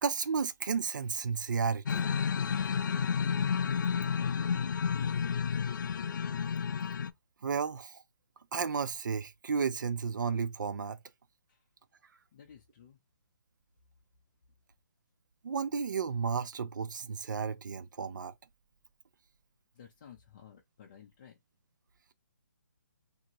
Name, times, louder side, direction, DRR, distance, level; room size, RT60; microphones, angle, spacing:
voice 1, 0.0-2.1 7.4-8.0 8.5-11.0 15.4-18.3, right 6 dB, 80° right, 0.5 m, -33 dB
sound 1, 1.9-7.1, left 6 dB, 85° left, 0.4 m, -31 dB
voice 2, 4.9-5.9 11.5-11.6 12.3-13.0 19.7-21.4, left 8 dB, 25° left, 0.5 m, -54 dB
2.6 x 2.6 x 2.9 m
hypercardioid pair, 170°, 10 cm